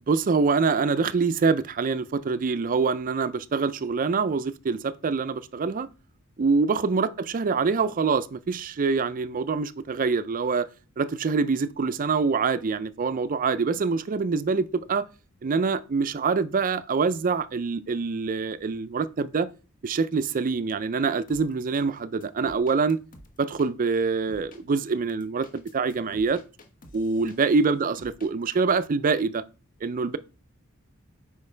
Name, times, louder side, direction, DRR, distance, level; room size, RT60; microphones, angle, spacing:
voice 1, 0.1-5.9 6.4-10.7 11.0-15.1 15.4-19.5 19.8-23.0 23.4-26.4 26.9-29.4 29.8-30.2, right 4 dB, 40° right, 0.4 m, -25 dB
sound 1, 21.3-21.8 22.2-23.7 24.3-24.6 25.1-27.7 28.0-28.3, left 1 dB, 40° left, 1.0 m, -50 dB
8.2 x 5.1 x 3.3 m
head